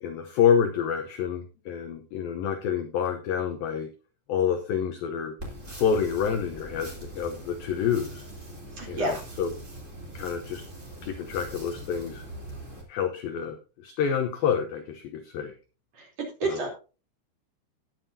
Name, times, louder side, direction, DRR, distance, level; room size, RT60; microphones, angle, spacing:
voice 1, 0.0-3.9 4.3-5.3 5.7-8.2 8.9-9.6 10.1-10.6 11.0-12.2 12.9-15.5 16.4-16.6, left 7 dB, 80° left, 6 dB, 2.1 m, -28 dB
sound 1, 5.4-12.8, right 1 dB, 20° right, 2.8 m, -42 dB
voice 2, 8.8-9.2 15.9-16.1 16.4-16.9, right 2 dB, 40° right, -1 dB, 4.0 m, -29 dB
19.0 x 7.5 x 2.7 m, 0.32 s
omnidirectional pair, 5.3 m